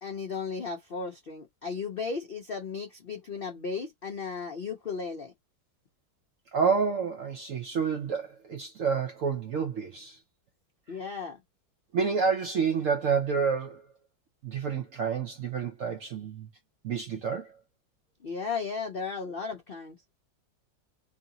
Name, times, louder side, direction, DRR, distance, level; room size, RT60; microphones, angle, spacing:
voice 1, 0.0-5.3 10.9-11.4 18.2-20.0, left 5 dB, 70° left, 0.5 m, -35 dB
voice 2, 6.5-10.2 11.9-13.8 14.4-16.5 16.8-17.5, right 6 dB, 65° right, 0.8 m, -29 dB
3.1 x 2.8 x 3.8 m
omnidirectional pair, 2.0 m